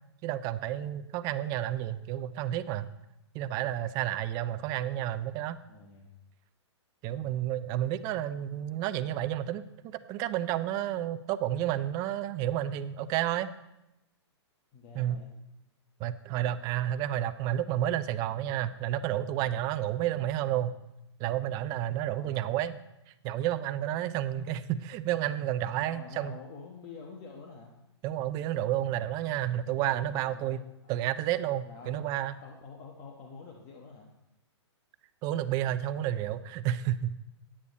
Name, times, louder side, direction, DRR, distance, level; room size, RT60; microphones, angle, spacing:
voice 1, 0.2-2.9 3.3-5.6 7.0-13.5 14.9-15.2 16.0-20.7 21.2-22.8 23.2-26.3 28.0-30.6 30.9-32.3 35.2-37.3, right 12 dB, 25° right, 12 dB, 0.4 m, -31 dB
voice 2, 5.7-6.1 7.1-7.4 14.7-15.3 22.1-22.5 25.8-27.7 29.9-30.9 31.6-34.1, left 4 dB, 35° left, 0 dB, 1.2 m, -48 dB
9.7 x 8.7 x 4.1 m, 0.90 s
hypercardioid pair, 140°, 15 cm